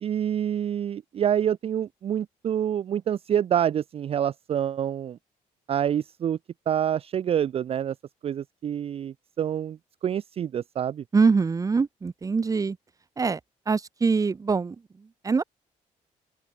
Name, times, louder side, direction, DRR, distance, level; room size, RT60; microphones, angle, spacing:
voice 1, 0.0-5.2 5.7-6.4 6.7-7.9 8.2-11.0, right 9 dB, 45° right, 0.5 m, -27 dB
voice 2, 11.1-12.8 13.2-13.4 13.7-15.4, right 4 dB, 25° right, 1.1 m, -24 dB
open air
cardioid pair, 120°, 14 cm